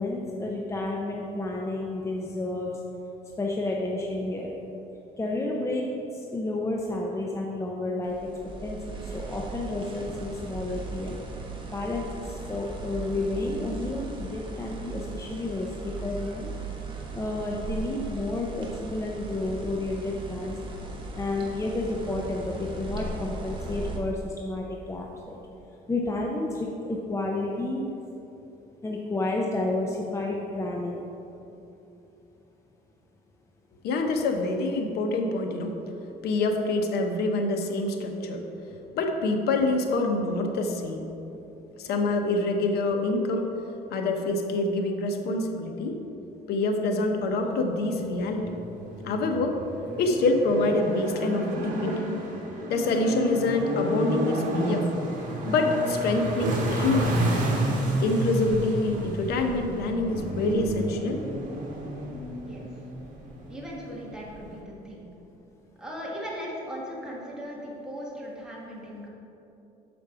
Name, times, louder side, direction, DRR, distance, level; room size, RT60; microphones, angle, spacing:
voice 1, 0.0-2.7 3.4-4.5 5.2-5.9 6.1-8.2 8.6-8.8 9.1-11.1 11.7-16.5 17.1-20.6 21.1-25.4 25.9-27.8 28.8-31.0, left 2 dB, 15° left, -1 dB, 0.6 m, -31 dB
sound 1, 8.0-24.0, right 3 dB, 30° right, 1.2 m, -38 dB
voice 2, 33.8-35.7 36.2-38.4 38.9-41.0 41.8-43.5 43.9-46.0 46.5-48.6 49.0-49.6 50.0-52.2 52.7-54.9 55.4-57.4 58.0-61.2, left 2 dB, 70° left, 3 dB, 0.9 m, -26 dB
sound 2, 48.0-64.6, right 1 dB, 50° right, 1.5 m, -31 dB
voice 3, 63.5-65.1 65.8-69.1, equal, 5° right, -5 dB, 1.4 m, -38 dB
6.9 x 5.2 x 4.9 m, 2.9 s
cardioid pair, 110°, 17 cm